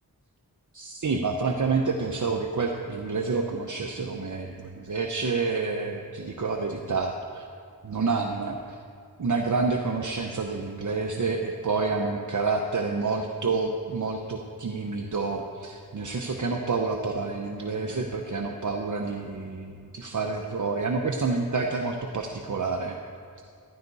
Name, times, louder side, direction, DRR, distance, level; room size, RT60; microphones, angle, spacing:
voice 1, 0.7-7.4 7.8-8.8 9.2-23.0, right 4 dB, 50° right, 2 dB, 0.9 m, -28 dB
14.5 x 12.5 x 4.1 m, 2.2 s
wide cardioid pair, 75°, 38 cm